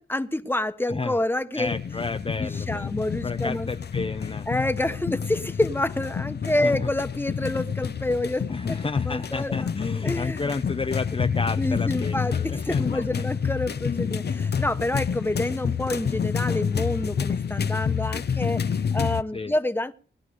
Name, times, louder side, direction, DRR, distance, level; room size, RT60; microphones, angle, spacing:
voice 1, 0.0-1.8 2.4-3.7 4.5-8.8 9.1-9.7 10.0-10.5 11.6-19.9, left 1 dB, 10° left, 9 dB, 1.4 m, -28 dB
voice 2, 1.5-2.9 3.2-4.5 4.9-5.2 6.5-6.9 8.5-13.2 14.3-14.5 19.3-19.5, left 3 dB, 30° left, 7 dB, 0.7 m, -32 dB
sound 1, 1.6-19.2, left 6 dB, 65° left, 0.8 m, -28 dB
20.5 x 11.5 x 5.4 m, 0.41 s
cardioid pair, 70°, 18 cm